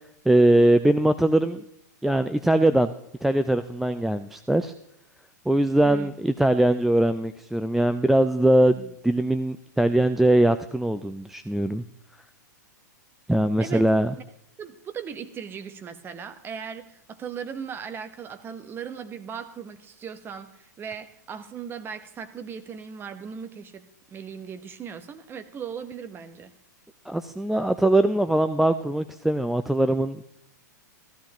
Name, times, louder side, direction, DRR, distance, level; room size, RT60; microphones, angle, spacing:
voice 1, 0.3-1.6 2.0-2.9 3.2-4.7 5.5-11.8 13.3-14.1 27.1-30.2, right 1 dB, 5° right, 9 dB, 0.3 m, -21 dB
voice 2, 13.6-13.9 14.2-14.3 14.6-26.5, right 7 dB, 20° right, 9 dB, 1.1 m, -38 dB
14.5 x 13.0 x 3.0 m, 0.79 s
figure-of-eight pair, 105°, 10 cm